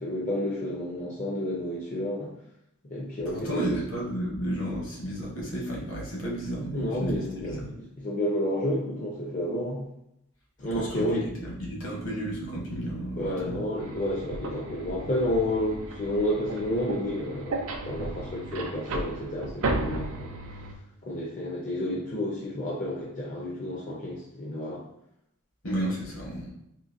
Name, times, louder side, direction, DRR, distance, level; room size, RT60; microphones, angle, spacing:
voice 1, 0.0-2.3 2.8-3.8 6.7-9.9 10.6-11.3 13.2-20.4 21.0-24.8, left 1 dB, 35° left, -5 dB, 0.5 m, -30 dB
voice 2, 3.3-7.7 10.7-13.6 25.6-26.5, right 1 dB, 60° left, -3 dB, 1.1 m, -32 dB
sound 1, 13.8-20.8, right 2 dB, 70° right, 0.4 m, -35 dB
3.8 x 2.5 x 2.5 m, 0.80 s
head